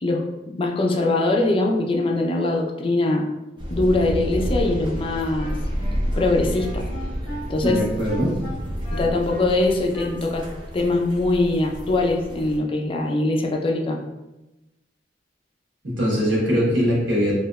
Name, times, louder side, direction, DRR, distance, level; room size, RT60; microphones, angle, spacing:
voice 1, 0.0-3.3 3.7-5.5 6.2-6.9 7.5-7.8 8.9-10.5 10.7-14.0, left 2 dB, 30° left, 1 dB, 0.3 m, -22 dB
sound 1, 3.6-12.6, equal, 25° right, 0.5 m, -30 dB
Wind instrument woodwind instrument, 5.0-10.7, right 1 dB, 10° right, 1.1 m, -39 dB
voice 2, 7.6-8.3 15.8-17.3, equal, 85° right, -5 dB, 1.2 m, -21 dB
3.0 x 2.7 x 2.3 m, 1.0 s
head